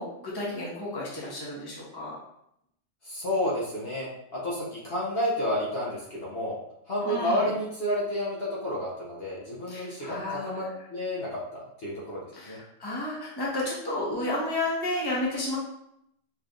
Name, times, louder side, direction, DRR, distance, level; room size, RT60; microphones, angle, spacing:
voice 1, 0.0-2.1 7.0-7.5 9.7-10.7 12.3-15.6, left 1 dB, 20° left, -5 dB, 1.1 m, -32 dB
voice 2, 3.0-6.6 6.9-10.6 10.9-12.2 12.5-12.6, equal, 55° left, -6 dB, 1.2 m, -30 dB
4.6 x 3.3 x 2.5 m, 0.76 s
omnidirectional pair, 1.3 m